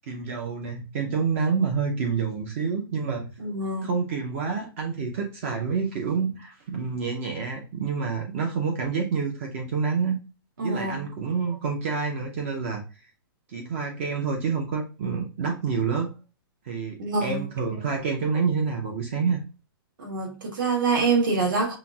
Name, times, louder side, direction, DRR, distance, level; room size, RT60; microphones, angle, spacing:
voice 1, 0.1-3.3 3.8-10.2 10.6-12.8 13.5-16.1 16.6-19.4, right 5 dB, 30° right, 0.7 m, -28 dB
voice 2, 3.4-3.9 10.6-11.0 17.0-17.5 20.0-21.8, right 4 dB, 55° right, 1.6 m, -25 dB
5.7 x 2.6 x 2.3 m
hypercardioid pair, 175°, 13 cm